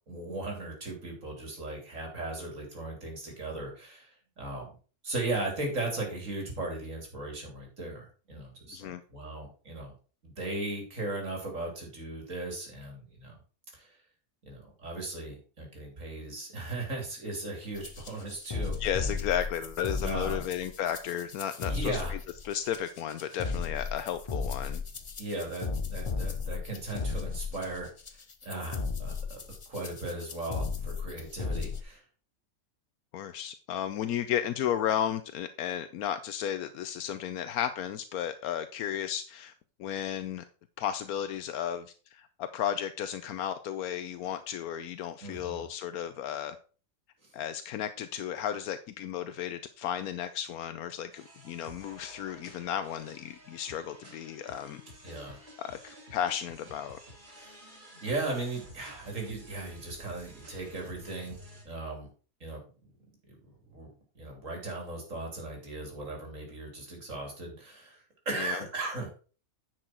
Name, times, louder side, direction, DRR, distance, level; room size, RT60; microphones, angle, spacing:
voice 1, 0.1-4.7 5.0-8.0 8.3-9.9 10.2-13.4 13.7-14.0 14.4-18.8 20.0-20.4 21.7-22.2 25.2-29.4 29.7-32.0 45.2-45.7 47.2-47.3 55.0-55.4 57.4-57.6 58.0-61.4 61.7-62.1 62.4-62.6 63.3-63.4 63.7-63.9 64.2-69.2, right 2 dB, 60° right, 1 dB, 3.6 m, -37 dB
sound 1, 17.7-31.8, left 5 dB, 30° left, 0.6 m, -35 dB
voice 2, 18.8-22.2 22.4-24.8 33.1-39.5 39.8-40.4 40.8-46.6 47.3-54.8 55.6-57.0 68.4-68.6, left 10 dB, 85° left, 10 dB, 1.1 m, -34 dB
sound 2, 51.1-61.6, right 1 dB, 35° right, 2.7 m, -51 dB
10.0 x 6.3 x 4.3 m, 0.37 s
omnidirectional pair, 1.5 m